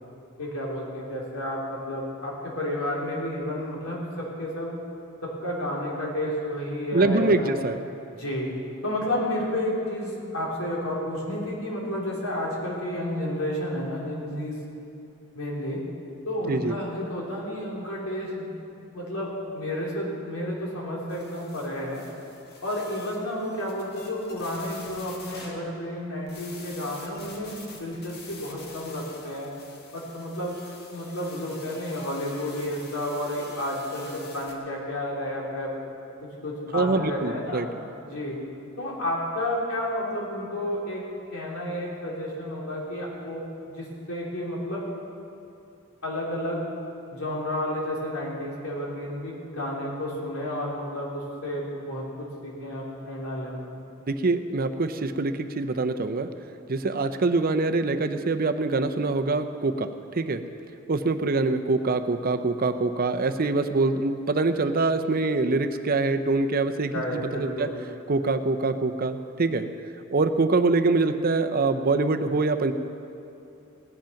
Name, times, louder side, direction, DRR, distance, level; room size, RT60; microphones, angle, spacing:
voice 1, 0.4-4.7 5.2-7.5 8.1-8.5 8.8-14.6 15.3-15.8 16.3-18.5 18.9-22.0 22.6-27.5 27.8-29.5 29.9-30.6 30.9-35.7 36.2-37.6 38.1-38.4 38.8-41.0 41.3-43.4 43.7-44.9 46.0-46.6 47.1-53.8 66.9-67.7, left 1 dB, 85° left, -4 dB, 3.6 m, -31 dB
voice 2, 6.9-7.8 16.5-16.7 36.7-37.7 54.1-56.3 56.7-59.9 60.1-60.4 60.9-67.7 68.1-69.7 70.1-72.7, right 3 dB, 45° right, 8 dB, 0.7 m, -24 dB
sound 1, 21.1-26.0 26.3-34.5, left 3 dB, 50° left, 1.7 m, -47 dB
17.0 x 10.5 x 5.8 m, 2.8 s
head